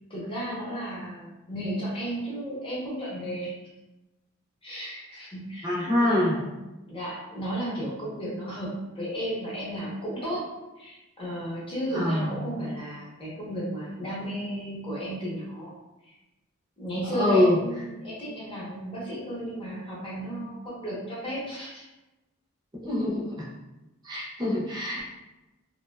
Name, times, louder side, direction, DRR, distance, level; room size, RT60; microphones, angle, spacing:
voice 1, 0.1-3.5 4.6-6.5 6.9-10.4 10.8-15.7 16.8-21.8, right 1 dB, 25° left, -7 dB, 0.8 m, -34 dB
voice 2, 5.6-6.4 11.9-12.4 17.1-17.6 22.8-23.5 24.0-25.0, left 1 dB, 20° right, -5 dB, 0.6 m, -24 dB
2.7 x 2.2 x 2.2 m, 1.0 s
head